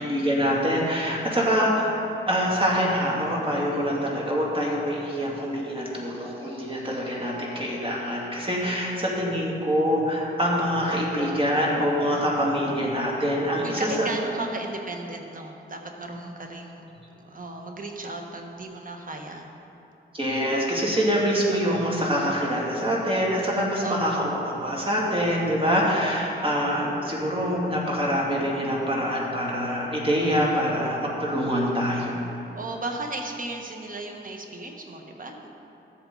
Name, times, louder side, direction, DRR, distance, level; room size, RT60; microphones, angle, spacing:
voice 1, 0.0-1.9 2.3-14.1 20.1-32.2, equal, 25° right, -3 dB, 2.5 m, -25 dB
voice 2, 10.9-11.4 13.6-16.8 17.2-19.5 23.8-24.2 32.5-35.6, right 2 dB, 45° right, 2 dB, 1.3 m, -35 dB
13.0 x 8.3 x 3.9 m, 2.9 s
cardioid pair, 70°, 20 cm